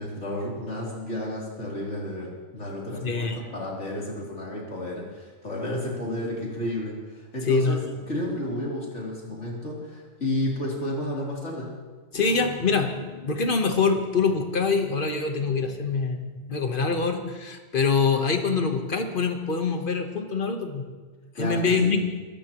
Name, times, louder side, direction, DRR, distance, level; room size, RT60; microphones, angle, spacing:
voice 1, 0.0-7.8 8.1-11.7 21.3-21.9, left 1 dB, 85° left, -4 dB, 3.8 m, -32 dB
voice 2, 3.0-3.4 7.5-7.9 12.1-20.9 21.4-22.1, left 4 dB, 50° left, 5 dB, 1.3 m, -25 dB
22.5 x 13.0 x 3.0 m, 1.3 s
omnidirectional pair, 1.2 m